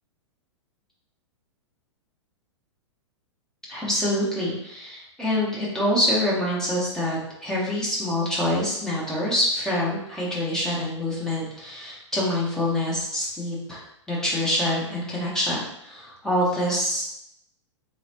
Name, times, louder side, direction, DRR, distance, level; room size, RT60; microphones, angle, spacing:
voice 1, 3.7-13.8 14.1-17.1, left 1 dB, 5° left, -6 dB, 1.0 m, -26 dB
3.9 x 3.0 x 2.9 m, 0.77 s
figure-of-eight pair, 100°, 15 cm